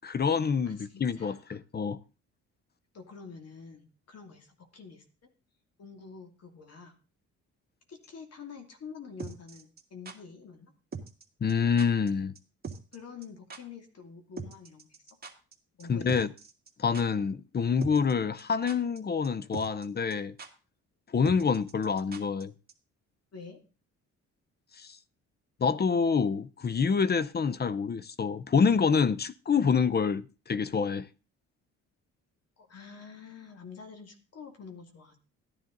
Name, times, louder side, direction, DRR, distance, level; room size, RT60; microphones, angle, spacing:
voice 1, 0.0-2.0 11.4-12.3 15.9-16.3 16.8-20.3 21.1-22.5 24.8-25.0 25.6-31.1, left 6 dB, 35° left, 0.7 m, -27 dB
voice 2, 0.6-1.6 2.9-5.0 5.8-6.9 7.9-10.7 12.9-15.0 15.8-16.2 23.3-23.6 32.6-35.2, left 6 dB, 55° left, 2.7 m, -47 dB
sound 1, 9.2-10.2 10.9-11.2 11.5-11.6 11.8-12.1 12.3-12.4 12.6-13.0 13.2-13.3 13.5-13.6 14.4-15.5 15.8-15.9 16.1-16.7 16.9-17.0 17.8-18.1 18.4-19.0 19.2-19.3 19.5-19.8 20.1-20.2 20.4-20.5 21.2-22.4 22.7-22.8, right 5 dB, 30° right, 2.2 m, -41 dB
14.0 x 10.5 x 3.9 m
cardioid pair, 90°, 30 cm